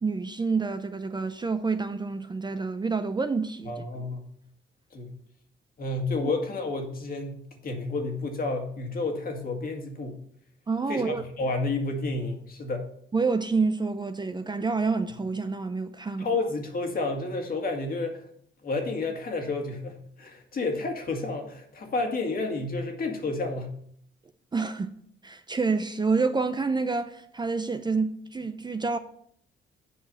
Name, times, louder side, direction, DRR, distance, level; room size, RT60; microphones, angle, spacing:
voice 1, 0.0-3.8 10.7-11.2 13.1-16.3 24.5-24.9 25.2-29.0, right 4 dB, 20° right, 0.5 m, -28 dB
voice 2, 3.6-4.2 4.9-5.2 5.8-10.2 10.9-12.8 16.2-18.2 18.6-23.7, left 3 dB, 45° left, 2.0 m, -30 dB
8.0 x 4.7 x 7.2 m
cardioid pair, 90°, 20 cm